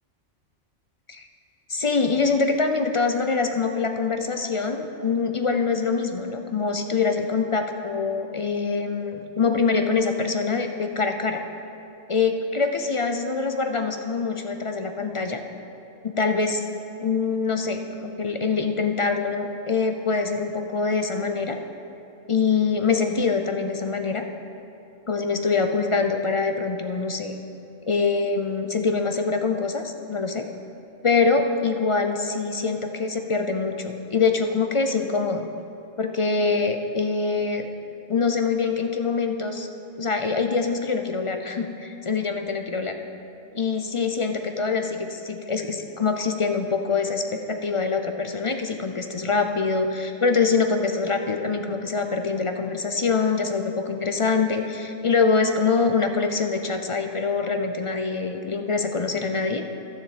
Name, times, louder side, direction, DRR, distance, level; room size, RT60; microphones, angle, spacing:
voice 1, 1.7-11.4 12.1-15.4 16.0-16.6 17.0-21.6 22.3-24.2 25.1-27.4 27.9-30.4 31.0-35.5 36.0-37.7 38.1-39.7 40.0-42.9 43.5-59.6, left 4 dB, 45° left, 5 dB, 0.4 m, -24 dB
11.5 x 7.2 x 6.8 m, 2.8 s
omnidirectional pair, 1.3 m